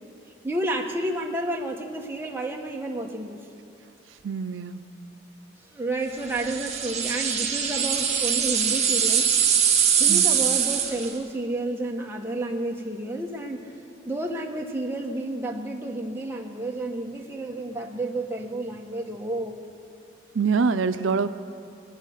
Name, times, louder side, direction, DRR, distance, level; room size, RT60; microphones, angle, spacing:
voice 1, 0.4-3.4 5.7-9.3 10.0-13.7 14.0-19.6, right 1 dB, 10° right, 0 dB, 1.2 m, -31 dB
voice 2, 4.2-4.8 10.1-10.3 20.3-21.3, right 5 dB, 85° right, 10 dB, 0.5 m, -24 dB
sound 1, 6.3-11.2, right 8 dB, 35° right, 1.4 m, -23 dB
21.5 x 9.2 x 6.6 m, 2.8 s
head